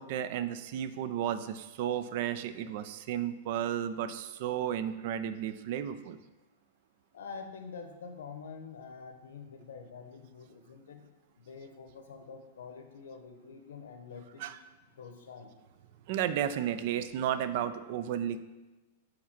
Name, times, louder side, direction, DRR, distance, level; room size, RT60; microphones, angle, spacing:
voice 1, 0.0-6.2 14.4-14.6 16.1-18.4, right 10 dB, 45° right, 12 dB, 0.3 m, -33 dB
voice 2, 7.1-11.0 11.5-14.5 15.0-15.5, left 5 dB, 90° left, 5 dB, 0.9 m, -46 dB
4.9 x 4.0 x 5.8 m, 1.2 s
supercardioid pair, 165°, 0 cm